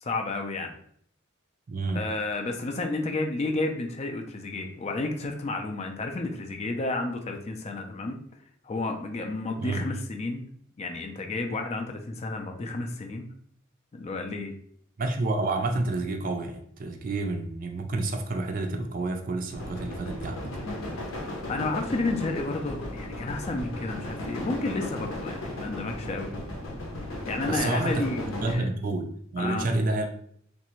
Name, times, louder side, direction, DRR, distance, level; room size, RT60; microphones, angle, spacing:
voice 1, 0.0-0.7 1.9-8.2 8.6-10.5 10.8-13.3 13.9-14.5 20.6-20.9 21.5-26.3 27.3-28.6 29.4-29.8, left 2 dB, 35° left, 4 dB, 0.4 m, -31 dB
voice 2, 1.7-2.1 9.6-9.8 15.0-20.5 27.5-28.1 28.4-30.1, right 2 dB, 45° right, 4 dB, 0.4 m, -29 dB
sound 1, 19.5-28.6, left 1 dB, 80° left, 0.7 m, -36 dB
3.2 x 2.5 x 3.0 m, 0.63 s
head